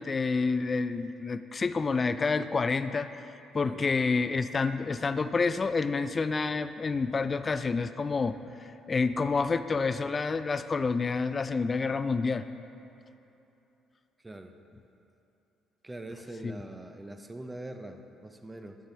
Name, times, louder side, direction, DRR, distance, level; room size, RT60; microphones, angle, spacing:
voice 1, 0.0-3.1 3.5-8.4 8.9-12.4 16.4-16.6, left 4 dB, 35° left, 12 dB, 0.3 m, -28 dB
voice 2, 15.8-18.8, right 1 dB, 20° right, 7 dB, 0.6 m, -43 dB
9.6 x 7.0 x 3.4 m, 2.9 s
hypercardioid pair, 50°, 0 cm